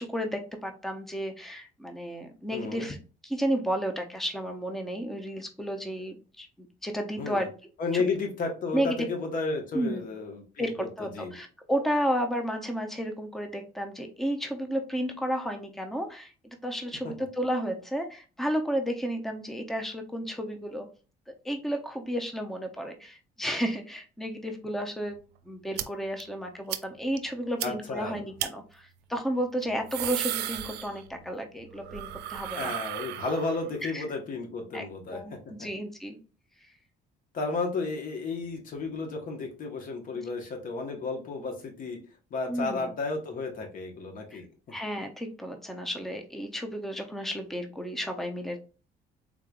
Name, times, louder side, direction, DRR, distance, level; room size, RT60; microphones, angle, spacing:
voice 1, 0.0-3.0 3.2-7.5 7.9-8.0 8.7-9.0 9.7-10.1 10.6-20.9 21.3-25.2 25.5-32.7 33.8-34.0 34.7-36.2 42.5-42.9 44.3-44.4 44.7-48.6, equal, ahead, 5 dB, 0.6 m, -32 dB
voice 2, 2.5-2.9 7.2-7.5 7.8-10.7 11.0-11.4 17.0-17.1 27.6-28.2 32.4-35.2 37.3-42.0 42.3-44.5, left 3 dB, 55° left, 2 dB, 1.3 m, -32 dB
sound 1, 25.8-25.9 26.2-26.3 26.7-26.8 27.2-27.3 27.6-27.7 28.4-28.5 29.6-31.3 31.6-33.7, right 13 dB, 75° right, 0.4 m, -34 dB
3.8 x 3.3 x 2.4 m, 0.35 s
cardioid pair, 110°, 17 cm